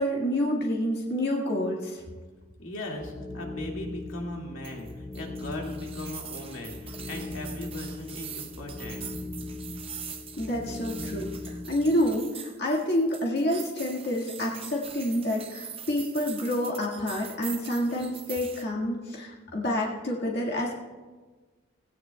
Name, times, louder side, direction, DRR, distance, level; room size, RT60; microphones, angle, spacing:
voice 1, 0.0-2.0 10.4-20.8, left 1 dB, 55° left, -3 dB, 1.8 m, -28 dB
voice 2, 2.6-9.1, left 1 dB, 85° left, 0 dB, 2.1 m, -39 dB
sound 1, 2.9-12.2, left 2 dB, 15° left, 0.6 m, -39 dB
sound 2, 4.6-18.6, right 8 dB, 30° right, 0.8 m, -43 dB
17.0 x 17.0 x 2.3 m, 1.3 s
head